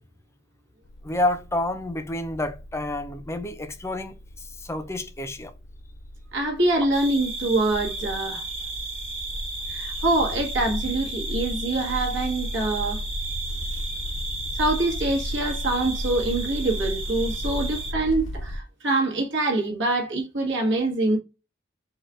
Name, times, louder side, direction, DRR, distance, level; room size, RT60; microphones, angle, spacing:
sound 1, 0.9-18.6, equal, 70° left, 0.6 m, -35 dB
voice 1, 1.0-5.5 13.7-13.8, left 1 dB, 15° left, 0.6 m, -29 dB
voice 2, 6.3-8.4 9.7-13.0 14.6-21.2, right 2 dB, 65° right, 1.5 m, -25 dB
sound 2, 6.9-17.9, right 2 dB, 30° right, 1.2 m, -34 dB
4.4 x 2.4 x 4.8 m
head